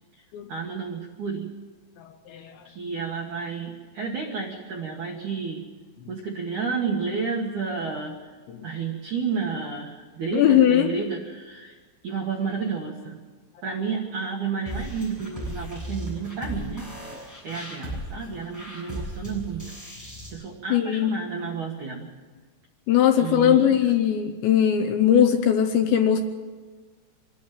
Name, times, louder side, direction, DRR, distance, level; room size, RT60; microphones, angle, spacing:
voice 1, 0.5-1.5 2.6-5.7 6.1-8.4 8.6-11.8 12.0-13.2 13.6-19.7 20.3-22.1 23.2-23.8, right 5 dB, 70° right, 0 dB, 1.8 m, -31 dB
voice 2, 10.3-10.9 20.7-21.2 22.9-26.2, left 9 dB, 75° left, 6 dB, 2.8 m, -20 dB
sound 1, 14.7-20.3, equal, 5° left, 7.3 m, -36 dB
25.0 x 11.5 x 9.4 m, 1.4 s
omnidirectional pair, 6.0 m